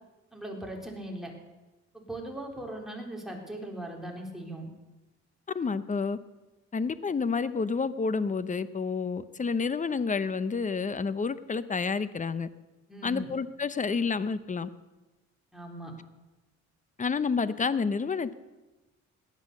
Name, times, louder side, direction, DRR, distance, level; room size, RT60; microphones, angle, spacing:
voice 1, 0.3-1.3 1.9-4.7 12.9-13.3 15.5-15.9, right 1 dB, ahead, 0 dB, 3.7 m, -39 dB
voice 2, 5.5-6.2 6.7-12.5 13.0-14.7 17.0-18.3, left 5 dB, 25° left, 14 dB, 0.8 m, -29 dB
17.5 x 10.5 x 6.7 m, 1.1 s
cardioid pair, 90°, 30 cm